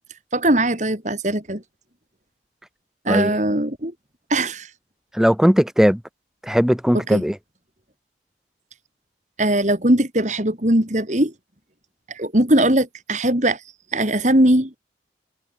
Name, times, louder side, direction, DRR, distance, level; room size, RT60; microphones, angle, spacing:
voice 1, 0.3-1.6 3.1-3.9 4.3-4.7 7.1-7.2 9.4-11.3 12.1-13.6 13.9-14.7, right 1 dB, 40° right, 3.5 m, -20 dB
voice 2, 3.1-3.4 5.1-6.0 6.4-7.4, equal, 5° right, 0.9 m, -18 dB
head